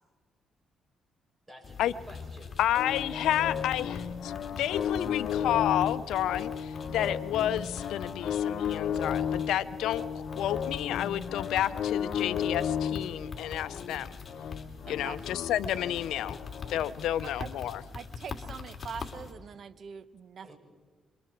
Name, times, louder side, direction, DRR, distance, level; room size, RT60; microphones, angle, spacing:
voice 1, 1.5-2.8 3.1-3.5 4.5-4.6 20.4-20.6, equal, 20° right, 0 dB, 7.2 m, -51 dB
sound 1, 1.6-19.3, left 5 dB, 40° left, 2.7 m, -44 dB
voice 2, 2.6-4.3 4.6-14.1 14.9-16.4 16.7-17.8, left 12 dB, 80° left, 13 dB, 0.6 m, -30 dB
sound 2, 2.7-16.8, left 8 dB, 65° left, 1.2 m, -34 dB
voice 3, 14.9-15.3 17.2-17.5 17.9-20.5, right 6 dB, 55° right, 14 dB, 1.0 m, -43 dB
26.5 x 23.5 x 4.5 m, 1.5 s
cardioid pair, 90°, 0 cm